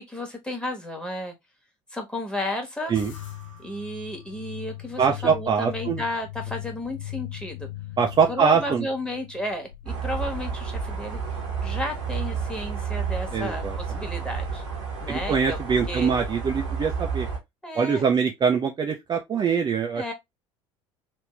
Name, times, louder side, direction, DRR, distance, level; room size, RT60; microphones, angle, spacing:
voice 1, 0.0-1.3 1.9-3.0 3.6-7.7 8.3-14.6 15.0-15.6 15.9-16.1 17.6-18.0 19.9-20.1, left 1 dB, 5° left, 1.3 m, -33 dB
sound 1, 3.0-13.6, left 14 dB, 75° left, 0.7 m, -41 dB
voice 2, 5.0-6.0 8.0-8.9 13.3-14.0 15.1-17.3 17.7-20.1, right 6 dB, 25° right, 0.5 m, -23 dB
sound 2, 9.9-17.4, right 5 dB, 75° right, 1.1 m, -31 dB
3.4 x 2.5 x 3.1 m
figure-of-eight pair, 65°, 16 cm